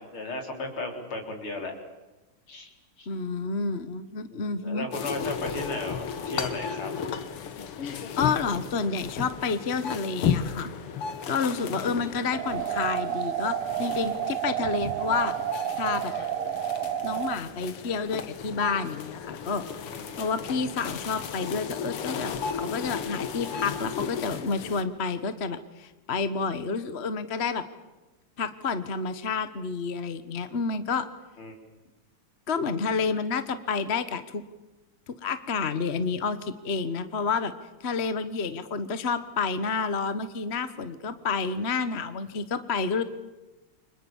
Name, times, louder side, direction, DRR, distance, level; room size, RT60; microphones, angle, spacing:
voice 1, 0.0-1.7 2.5-2.7 3.0-3.1 4.3-6.9 11.7-12.1 19.9-20.5 31.4-31.5, left 2 dB, 70° left, 3 dB, 5.0 m, -35 dB
voice 2, 3.1-4.9 8.2-10.7 11.3-15.3 15.8-16.1 17.0-19.7 20.2-27.6 28.4-31.1 32.5-34.4 35.1-37.5 37.8-43.0, left 5 dB, 35° left, 12 dB, 1.3 m, -29 dB
sound 1, 4.9-24.8, left 7 dB, 90° left, 2.4 m, -35 dB
sound 2, 12.3-17.4, right 11 dB, 80° right, 2.0 m, -30 dB
30.0 x 25.5 x 7.3 m, 1.1 s
omnidirectional pair, 2.4 m